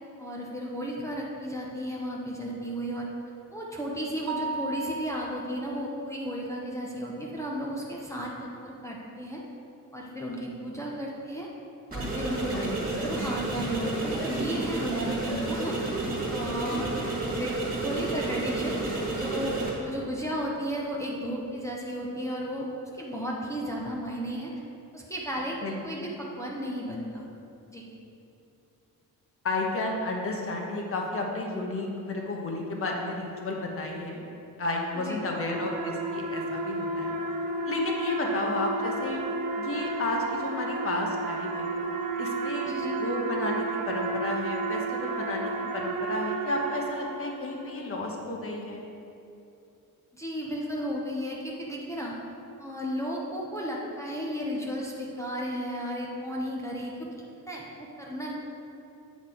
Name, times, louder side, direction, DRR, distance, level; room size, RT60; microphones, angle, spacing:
voice 1, 0.2-3.1 3.5-9.4 9.9-11.5 11.9-12.6 13.0-15.9 16.3-16.9 17.3-22.7 22.9-24.5 24.9-25.6 25.8-27.2 27.7-27.8 34.9-35.2 42.7-42.9 50.1-52.2 52.6-57.1 57.5-58.3, equal, 10° left, -4 dB, 0.7 m, -34 dB
Mallet percussion, 4.3-6.1, right 4 dB, 50° right, 0.4 m, -36 dB
sound 1, 11.9-19.7, right 2 dB, 25° right, 1.9 m, -31 dB
voice 2, 12.5-12.8 25.6-26.1 29.4-34.2 34.6-37.2 37.6-39.2 39.6-41.7 42.2-42.7 43.0-48.9, left 2 dB, 40° left, 0 dB, 1.1 m, -32 dB
sound 2, 34.9-47.6, right 3 dB, 75° right, 0.8 m, -32 dB
8.3 x 5.9 x 4.4 m, 2.8 s
cardioid pair, 165°, 35 cm